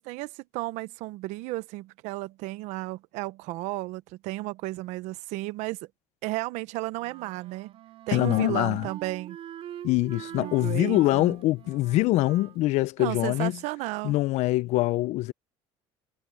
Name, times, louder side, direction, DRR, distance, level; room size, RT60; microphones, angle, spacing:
voice 1, 0.0-5.8 6.2-7.8 8.1-9.4 10.3-11.3 13.0-14.1, right 20 dB, 80° right, 1.0 m, -33 dB
Wind instrument woodwind instrument, 7.0-12.6, right 11 dB, 55° right, 3.0 m, -44 dB
voice 2, 8.1-8.9 9.8-13.5 14.0-15.3, left 18 dB, 70° left, 0.7 m, -24 dB
supercardioid pair, 100°, 12 cm